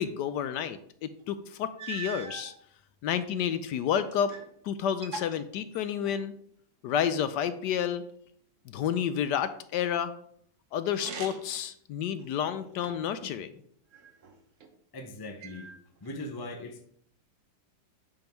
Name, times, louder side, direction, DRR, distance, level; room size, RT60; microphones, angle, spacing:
voice 1, 0.0-2.5 3.0-4.3 4.6-6.3 6.8-8.0 8.7-10.1 10.7-13.5, left 9 dB, 75° left, 1.1 m, -30 dB
sound 1, 1.2-1.3 1.8-2.5 3.3-4.5 4.8-6.3 10.9-11.6 12.2-13.2 13.9-14.7 15.4-16.2, right 6 dB, 50° right, 1.1 m, -43 dB
voice 2, 14.9-15.7 16.0-16.9, left 1 dB, 25° left, 0.5 m, -40 dB
8.9 x 5.3 x 4.5 m
omnidirectional pair, 2.0 m